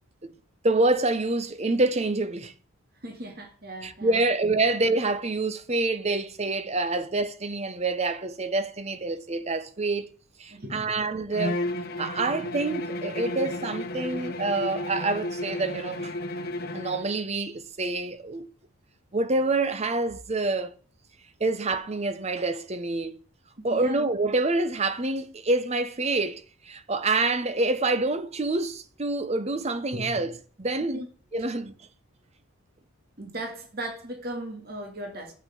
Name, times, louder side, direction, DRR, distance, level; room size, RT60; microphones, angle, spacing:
voice 1, 0.6-2.5 3.8-10.1 10.4-11.6 12.0-16.1 16.7-18.5 19.1-20.7 21.4-23.2 23.6-30.3 30.6-31.0 31.3-31.7, right 2 dB, 30° right, 0.7 m, -27 dB
voice 2, 3.0-4.2 10.5-11.0 14.1-14.2 23.6-24.0 29.9-30.3 30.8-31.1 31.4-31.5 33.2-35.3, right 1 dB, 45° right, 1.8 m, -37 dB
Bowed string instrument, 11.3-17.1, left 1 dB, 45° left, 0.9 m, -33 dB
7.6 x 5.8 x 6.9 m
head